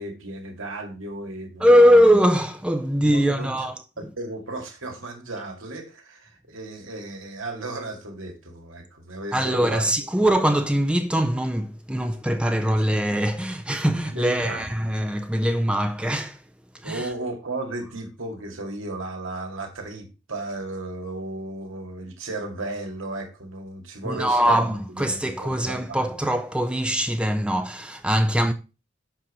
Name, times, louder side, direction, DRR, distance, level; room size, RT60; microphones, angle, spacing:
voice 1, 0.0-2.0 2.8-3.7 4.2-9.9 14.1-14.6 16.8-26.1, right 2 dB, 90° right, 2.1 m, -35 dB
voice 2, 1.6-3.7 9.3-16.4 16.8-17.1 24.1-28.5, equal, 5° right, 0.4 m, -21 dB
7.6 x 5.4 x 4.2 m
head